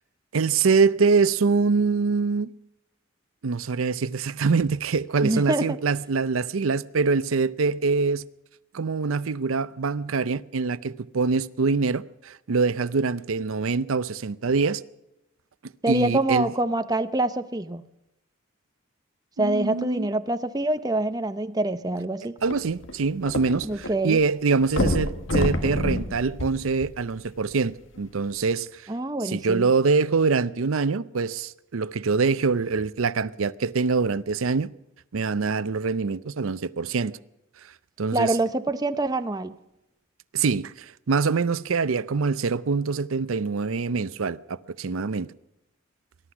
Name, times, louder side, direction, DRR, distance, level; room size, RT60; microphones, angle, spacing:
voice 1, 0.3-2.5 3.4-8.2 8.7-14.8 15.9-16.5 19.4-20.1 22.4-28.8 29.2-34.7 35.1-37.1 38.0-38.4 40.3-45.3, right 4 dB, 80° right, 0.6 m, -24 dB
voice 2, 5.2-5.8 15.8-17.8 19.4-22.3 23.6-24.2 28.9-29.7 38.1-39.6, right 2 dB, 20° right, 0.6 m, -25 dB
sound 1, 22.4-23.9 24.2-24.3 24.7-27.3 28.0-28.1, left 1 dB, 65° left, 1.6 m, -27 dB
20.5 x 11.5 x 5.9 m
head